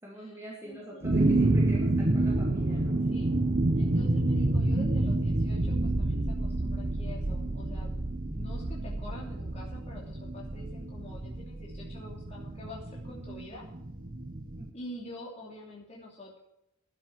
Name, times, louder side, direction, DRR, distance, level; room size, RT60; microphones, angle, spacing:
voice 1, 0.0-2.9 14.5-14.7, right 1 dB, 15° right, -4 dB, 2.7 m, -44 dB
voice 2, 0.6-1.3 3.1-3.3 3.7-7.9 8.3-13.6 14.7-16.4, left 1 dB, 30° left, -3 dB, 2.8 m, -47 dB
sound 1, 1.0-14.7, right 2 dB, 45° right, 1.2 m, -28 dB
12.0 x 7.6 x 8.0 m, 0.80 s
head